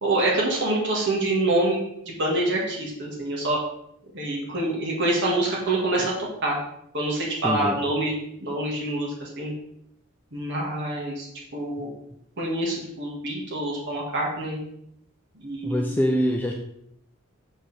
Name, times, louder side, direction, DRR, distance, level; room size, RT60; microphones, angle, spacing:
voice 1, 0.0-3.6 4.1-6.6 6.9-8.1 8.4-9.5 10.3-11.3 11.5-11.9 12.4-14.6 15.3-16.0, right 2 dB, 55° right, -3 dB, 1.9 m, -26 dB
voice 2, 7.4-7.8 15.6-16.5, equal, 10° left, 1 dB, 0.5 m, -24 dB
7.7 x 5.0 x 4.2 m, 0.74 s
head